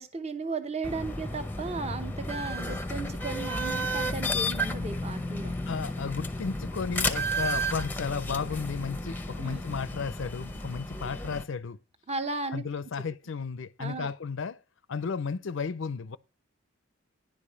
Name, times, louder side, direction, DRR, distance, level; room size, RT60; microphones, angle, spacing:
voice 1, 0.0-5.6 9.4-9.6 12.1-12.6 13.8-14.1, right 3 dB, 30° right, 0.9 m, -35 dB
sound 1, 0.8-11.4, equal, 10° left, 0.7 m, -32 dB
voice 2, 5.7-11.8 12.5-14.6 14.9-16.2, left 5 dB, 65° left, 0.5 m, -34 dB
10.5 x 5.0 x 6.8 m
head